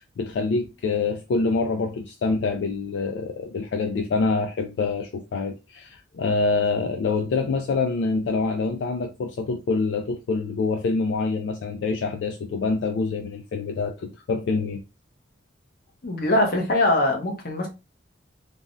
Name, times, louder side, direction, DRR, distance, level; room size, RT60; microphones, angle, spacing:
voice 1, 0.0-14.8, left 4 dB, 70° left, 0.3 m, -26 dB
voice 2, 16.0-17.7, left 1 dB, 50° left, 0.8 m, -22 dB
3.3 x 2.1 x 2.5 m
head